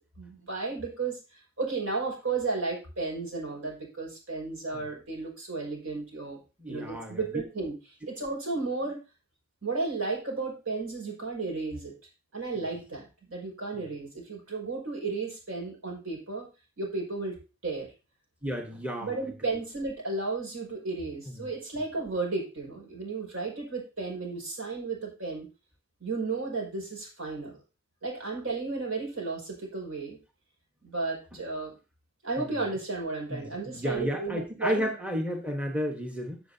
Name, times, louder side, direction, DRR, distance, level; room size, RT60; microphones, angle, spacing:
voice 1, 0.2-6.4 6.7-7.7 8.1-9.0 9.6-11.9 12.3-16.5 16.8-17.9 19.0-25.5 26.0-27.6 28.0-30.2 30.8-31.7 32.2-34.9, right 3 dB, 85° right, -1 dB, 5.6 m, -33 dB
voice 2, 6.6-7.2 13.7-13.9 18.4-19.2 21.3-21.5 31.3-31.4 32.4-32.6 33.3-36.4, equal, 5° right, 2 dB, 1.2 m, -32 dB
15.5 x 7.0 x 2.8 m, 0.31 s
head